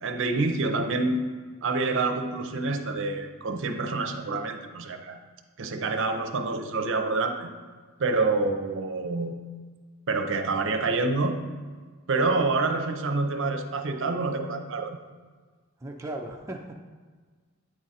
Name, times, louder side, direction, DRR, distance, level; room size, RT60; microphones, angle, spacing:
voice 1, 0.0-1.3 1.6-5.2 5.6-7.5 8.0-9.4 10.1-11.4 12.1-15.0, right 3 dB, 60° right, 6 dB, 0.6 m, -27 dB
voice 2, 15.8-16.8, right 1 dB, 15° right, 0 dB, 0.4 m, -36 dB
8.8 x 3.7 x 4.1 m, 1.5 s
head